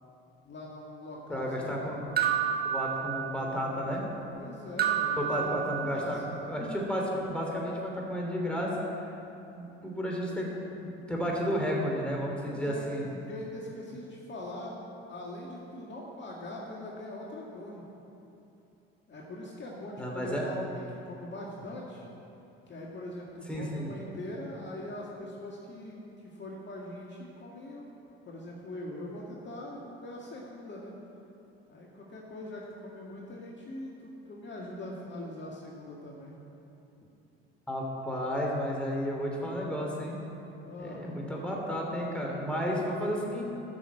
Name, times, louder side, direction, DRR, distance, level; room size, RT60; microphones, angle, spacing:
voice 1, 0.4-1.8 4.3-6.4 10.1-10.6 11.4-11.5 12.4-14.7 15.1-17.9 19.1-22.1 22.7-27.9 28.3-30.9 31.7-36.3 40.5-41.1, left 1 dB, 40° left, -3 dB, 2.0 m, -42 dB
voice 2, 1.3-2.0 2.6-4.0 5.1-6.2 6.5-8.8 9.5-13.0 20.0-20.5 23.5-23.9 37.7-40.2 40.8-43.4, equal, 5° left, -2 dB, 3.1 m, -32 dB
sound 1, 2.2-3.6 4.8-6.2, right 9 dB, 30° right, 1.5 m, -30 dB
12.0 x 6.4 x 7.5 m, 2.8 s
hypercardioid pair, 70°, 29 cm